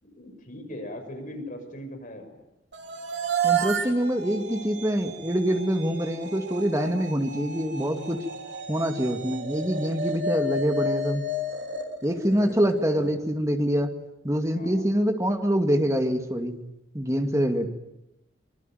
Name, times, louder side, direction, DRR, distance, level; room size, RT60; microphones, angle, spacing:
voice 1, 0.0-2.4 12.4-12.6 12.9-13.2 14.5-14.9, left 1 dB, 45° left, 5 dB, 6.4 m, -39 dB
sound 1, 2.7-12.9, right 3 dB, 75° right, 3.3 m, -32 dB
voice 2, 3.4-8.2 8.7-11.3 12.0-13.9 14.2-16.6 16.9-17.7, equal, 15° right, 5 dB, 2.4 m, -25 dB
25.0 x 24.0 x 9.4 m, 0.89 s
head